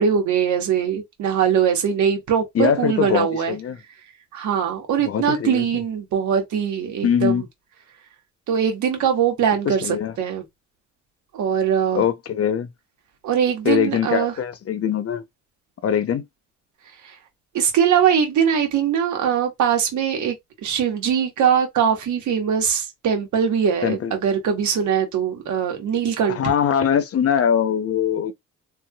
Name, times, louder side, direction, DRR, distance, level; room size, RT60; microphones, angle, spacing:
voice 1, 0.0-3.6 4.3-7.4 8.5-10.4 11.3-12.0 13.2-14.3 17.0-17.2 17.5-20.3 20.6-26.4, right 8 dB, 75° right, 1.4 m, -21 dB
voice 2, 2.5-3.8 5.0-5.7 7.0-7.4 9.7-10.1 11.9-12.7 13.6-15.2 15.8-16.2 23.8-24.1 26.3-28.3, left 8 dB, 50° left, 0.8 m, -22 dB
3.2 x 3.2 x 2.3 m
cardioid pair, 90°, 30 cm